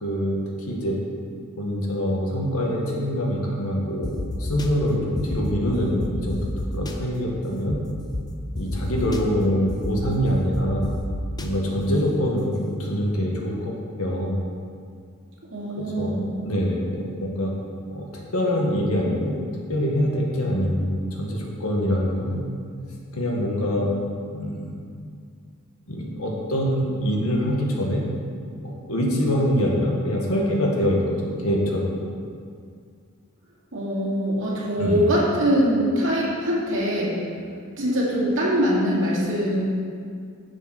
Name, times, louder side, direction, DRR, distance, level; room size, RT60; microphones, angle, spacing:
voice 1, 0.0-0.4 0.7-1.0 1.6-4.1 4.4-6.4 6.7-7.8 8.6-10.8 11.4-13.7 14.0-14.4 15.8-16.2 16.4-17.5 17.9-19.4 19.7-22.4 23.1-23.9 24.3-24.8 25.9-28.0 28.6-31.9 34.8-35.1, equal, 80° left, -2 dB, 1.8 m, -24 dB
sound 1, 4.0-4.7 5.2-5.5 6.0-6.9 7.7-7.8 8.1-8.2 8.5-9.2 9.7-10.1 10.5-11.5, left 2 dB, 20° left, 0.6 m, -30 dB
voice 2, 15.5-16.3 33.7-37.2 37.8-39.6, equal, 60° right, -6 dB, 2.5 m, -23 dB
10.5 x 7.2 x 4.5 m, 2.2 s
head